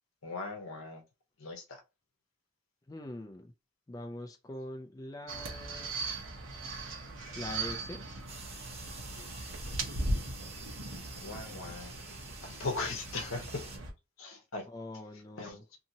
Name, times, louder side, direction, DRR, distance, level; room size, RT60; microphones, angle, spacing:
voice 1, 0.2-1.0 1.4-1.8 11.2-11.9 12.4-13.7 14.2-14.7 15.4-15.6, left 3 dB, 70° left, 0.8 m, -38 dB
voice 2, 2.9-3.5 3.9-6.0 7.3-8.0 14.7-15.6, left 1 dB, 15° left, 0.3 m, -43 dB
sound 1, 5.3-13.9, right 2 dB, 65° right, 0.9 m, -39 dB
sound 2, 8.3-13.8, right 3 dB, 30° right, 1.0 m, -48 dB
2.7 x 2.7 x 2.7 m
head